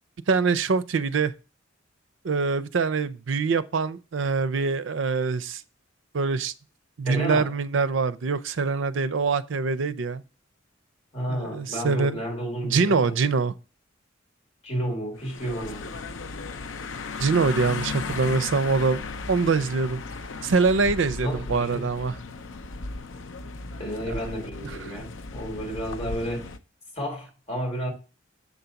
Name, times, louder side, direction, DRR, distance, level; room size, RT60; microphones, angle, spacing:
voice 1, 0.3-1.3 2.2-5.6 6.1-6.5 7.0-10.2 11.3-12.2 12.6-13.5 17.2-19.0 19.3-20.0 20.4-22.1 24.1-24.2, right 4 dB, 70° right, 0.5 m, -24 dB
voice 2, 7.0-7.5 11.1-13.1 14.6-15.9 21.2-21.9 23.8-26.5 26.9-27.9, equal, 35° left, 3.7 m, -31 dB
sound 1, 15.2-26.6, left 4 dB, 80° left, 0.6 m, -36 dB
7.2 x 4.0 x 5.7 m
head